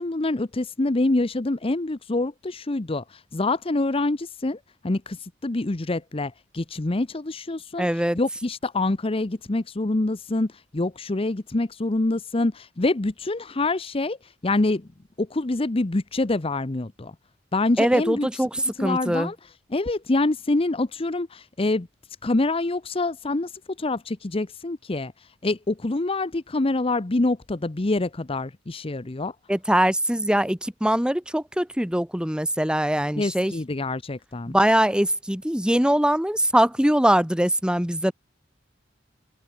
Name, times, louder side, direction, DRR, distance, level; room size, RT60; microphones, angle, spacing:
voice 1, 0.0-4.6 4.8-7.9 8.1-14.2 14.4-14.9 15.2-17.1 17.5-18.3 18.8-19.4 19.7-21.9 22.2-23.5 23.8-25.1 25.4-29.3 33.2-34.5, left 2 dB, 30° left, 0.8 m, -26 dB
voice 2, 7.8-8.2 17.8-19.3 29.5-33.5 34.5-38.1, right 1 dB, 5° right, 1.3 m, -22 dB
head